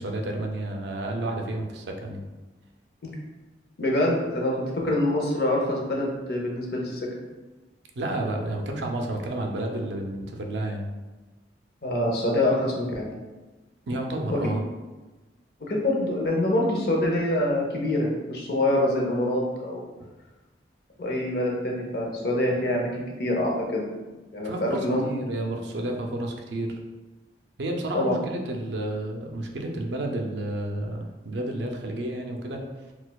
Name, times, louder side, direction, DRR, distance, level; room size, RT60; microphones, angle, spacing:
voice 1, 0.0-2.2 7.9-10.9 13.9-14.6 24.4-26.8 27.6-32.7, right 1 dB, 75° right, 2 dB, 0.5 m, -31 dB
voice 2, 3.8-7.1 11.8-13.1 14.3-14.4 15.6-19.8 21.0-23.9 24.3-25.0 27.9-28.1, left 1 dB, 60° left, -1 dB, 0.7 m, -25 dB
4.1 x 2.3 x 2.3 m, 1.2 s
head